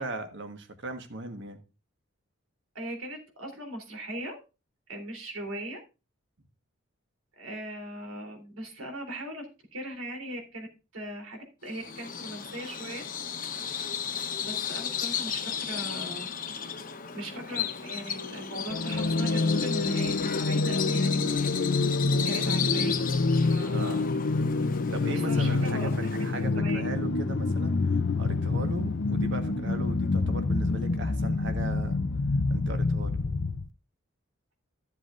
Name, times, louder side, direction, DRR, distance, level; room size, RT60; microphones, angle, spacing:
voice 1, 0.0-1.6 23.7-24.0 24.9-32.0 32.5-33.2, right 2 dB, 60° right, 1.4 m, -38 dB
voice 2, 2.8-4.4 4.9-5.8 7.4-10.7 10.9-13.0 14.4-16.3 17.1-21.8 22.1-24.1 25.1-26.9, right 1 dB, 85° right, 3.5 m, -39 dB
Bird vocalization bird call bird song, 11.7-26.5, left 8 dB, 40° left, 1.0 m, -35 dB
sound 1, 18.7-33.7, left 3 dB, 60° left, 0.6 m, -27 dB
14.5 x 7.5 x 2.5 m
head